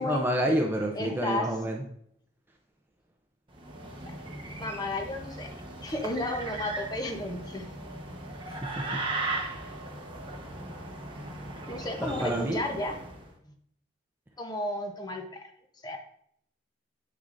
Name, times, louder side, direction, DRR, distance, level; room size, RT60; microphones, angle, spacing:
voice 1, 0.0-1.8 8.6-8.8 12.0-12.6, right 1 dB, 10° right, 1 dB, 0.5 m, -28 dB
voice 2, 0.9-1.5 4.0-4.1 4.6-5.5 5.8-7.7 8.5-8.6 11.7-13.0 14.4-15.5 15.8-16.0, left 2 dB, 20° left, 4 dB, 0.8 m, -33 dB
sound 1, 3.5-13.3, right 2 dB, 30° right, 1.1 m, -38 dB
8.0 x 6.5 x 2.6 m, 0.68 s
head